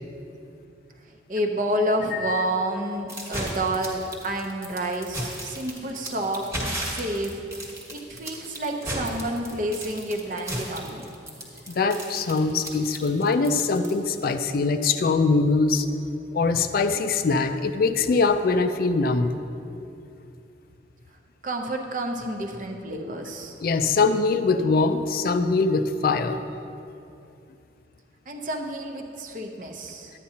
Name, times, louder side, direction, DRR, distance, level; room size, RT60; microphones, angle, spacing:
voice 1, 1.3-6.5 6.8-7.4 7.9-11.1 21.4-23.6 28.3-30.1, right 1 dB, 45° right, 3 dB, 0.7 m, -29 dB
voice 2, 2.1-2.4 11.7-15.9 16.3-19.4 23.6-26.4, left 4 dB, 50° left, 9 dB, 0.4 m, -22 dB
sound 1, 3.1-14.3, right 1 dB, 15° right, 1.3 m, -34 dB
11.5 x 9.2 x 2.8 m, 2.7 s
head